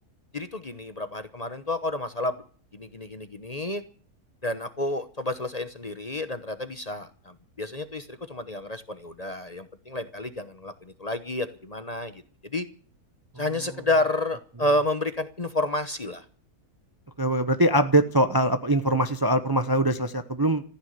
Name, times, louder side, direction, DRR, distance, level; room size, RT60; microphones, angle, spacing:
voice 1, 0.3-2.4 2.7-3.8 4.4-12.7 13.4-16.2, left 2 dB, 30° left, 10 dB, 1.0 m, -30 dB
voice 2, 17.2-20.6, right 1 dB, 20° right, 9 dB, 0.7 m, -22 dB
15.0 x 9.6 x 9.5 m, 0.42 s
omnidirectional pair, 1.6 m